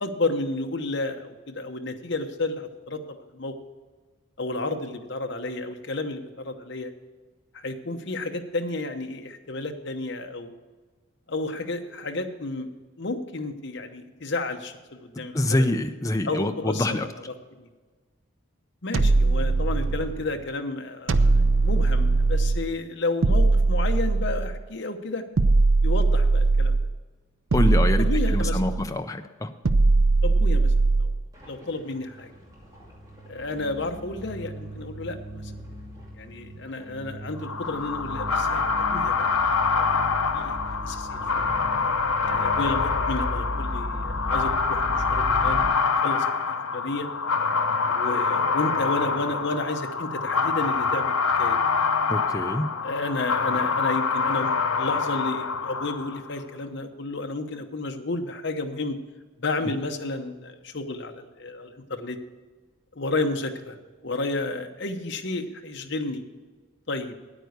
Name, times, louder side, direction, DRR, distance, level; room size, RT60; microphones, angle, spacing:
voice 1, 0.0-3.6 4.4-6.9 7.5-10.5 11.3-12.7 13.0-15.7 16.2-17.7 18.8-21.3 21.6-25.2 25.8-26.8 28.0-28.8 30.2-30.7 31.0-31.1 31.5-32.3 33.3-35.5 36.2-40.5 40.8-41.4 42.2-45.7 46.0-47.1 48.0-51.6 52.8-59.0 59.4-62.2 62.9-63.8 64.0-66.2 66.9-67.2, left 2 dB, 55° left, 5 dB, 1.0 m, -32 dB
voice 2, 15.3-17.1 27.5-29.5 52.1-52.7, left 1 dB, 15° left, 7 dB, 0.5 m, -25 dB
sound 1, 18.9-20.3 21.1-22.7 23.2-24.6 25.4-27.0 27.5-28.9 29.6-31.3, right 3 dB, 70° right, 0.6 m, -20 dB
sound 2, 31.3-45.7, equal, 15° right, 2.3 m, -36 dB
sound 3, 37.4-56.3, left 5 dB, 85° left, 0.8 m, -25 dB
9.4 x 9.1 x 6.6 m, 1.3 s
head